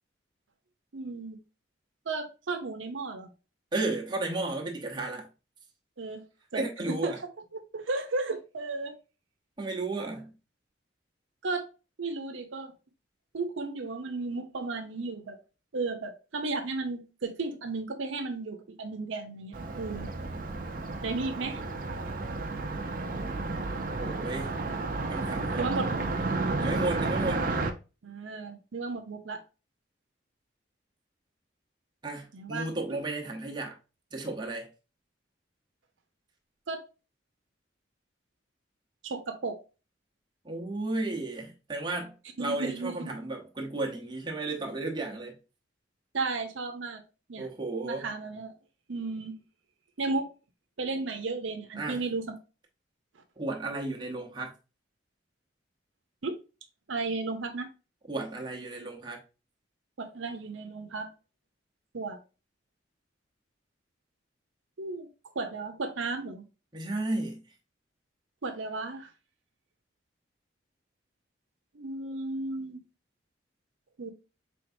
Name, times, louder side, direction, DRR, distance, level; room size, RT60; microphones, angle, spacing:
voice 1, 0.9-1.4 2.1-3.3 6.0-6.2 6.5-7.1 7.5-9.0 11.4-11.6 12.0-12.7 13.3-15.4 15.7-20.1 21.0-21.6 25.6-25.9 28.0-29.4 32.3-32.6 36.7-36.8 39.0-39.6 42.4-43.0 46.1-47.0 47.3-47.5 47.8-48.5 48.9-49.4 50.0-50.3 50.8-52.3 56.2-56.4 56.9-57.7 60.0-61.1 61.9-62.2 64.8-65.1 65.3-66.4 68.4-69.1 71.7-72.8 74.0-74.1, right 3 dB, 80° right, 0.7 m, -34 dB
voice 2, 3.7-5.3 6.5-7.2 9.6-10.3 23.8-24.6 25.1-25.7 26.6-27.4 32.0-33.8 34.1-34.7 40.4-45.4 47.4-48.1 51.8-52.0 53.4-54.5 58.1-59.2 66.7-67.4, right 2 dB, 25° right, 0.9 m, -33 dB
Car passing by, 19.5-27.7, right 3 dB, 45° right, 0.5 m, -32 dB
4.5 x 3.5 x 2.6 m
head